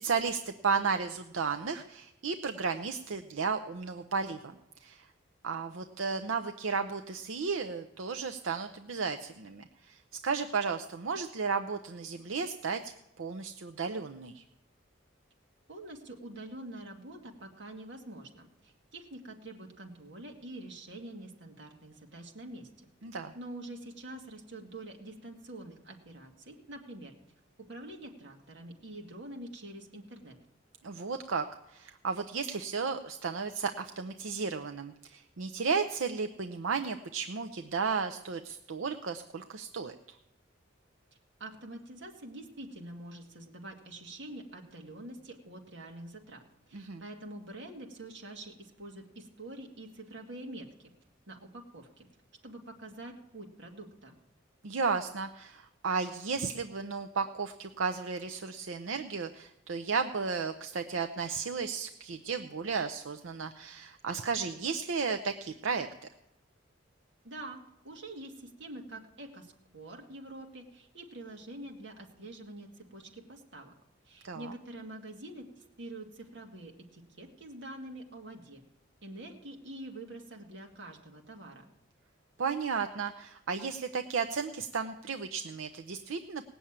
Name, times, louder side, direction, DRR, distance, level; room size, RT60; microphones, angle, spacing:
voice 1, 0.0-4.5 4.8-5.1 5.4-14.4 23.0-23.3 30.8-39.9 46.7-47.0 54.6-65.9 74.2-74.5 82.4-86.4, right 5 dB, 85° right, 6 dB, 0.6 m, -34 dB
voice 2, 15.7-22.9 23.3-27.1 27.6-30.4 41.4-50.9 51.3-52.1 52.4-54.2 67.2-73.7 74.1-78.6 79.0-81.6, right 1 dB, 65° right, 1 dB, 2.0 m, -46 dB
18.5 x 7.0 x 8.7 m, 0.91 s
head